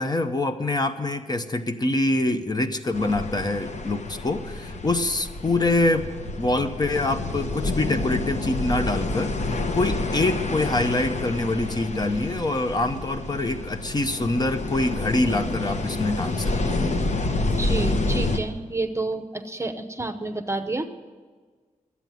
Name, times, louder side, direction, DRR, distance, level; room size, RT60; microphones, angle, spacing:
voice 1, 0.0-6.1 6.4-17.0, left 2 dB, 30° left, 8 dB, 0.8 m, -25 dB
sound 1, 2.9-18.4, left 2 dB, 60° left, 1.0 m, -28 dB
voice 2, 17.5-20.9, right 2 dB, 20° right, 7 dB, 0.8 m, -29 dB
12.5 x 8.3 x 9.1 m, 1.5 s
wide cardioid pair, 115°, 13 cm